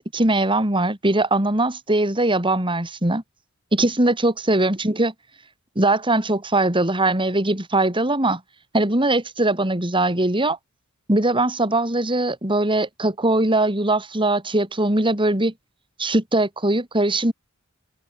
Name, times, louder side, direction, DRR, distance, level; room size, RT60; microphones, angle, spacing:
voice 1, 0.0-3.2 3.7-5.1 5.8-8.4 8.7-10.6 11.1-15.5 16.0-17.3, right 2 dB, 25° right, 4.1 m, -21 dB
head